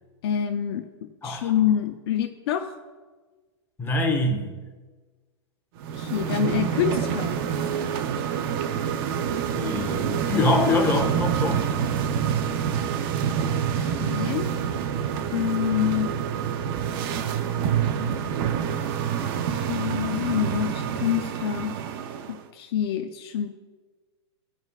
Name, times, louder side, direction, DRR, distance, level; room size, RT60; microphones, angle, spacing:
voice 1, 0.2-2.7 5.9-7.4 13.5-14.5 15.3-16.1 19.5-21.7 22.3-23.6, left 10 dB, 60° left, 6 dB, 0.7 m, -27 dB
voice 2, 3.8-4.5 9.5-11.7, left 2 dB, 15° left, 2 dB, 1.5 m, -24 dB
sound 1, 5.8-22.4, right 8 dB, 50° right, 0.8 m, -27 dB
15.5 x 5.3 x 2.4 m, 1.3 s
hypercardioid pair, 120°, 15 cm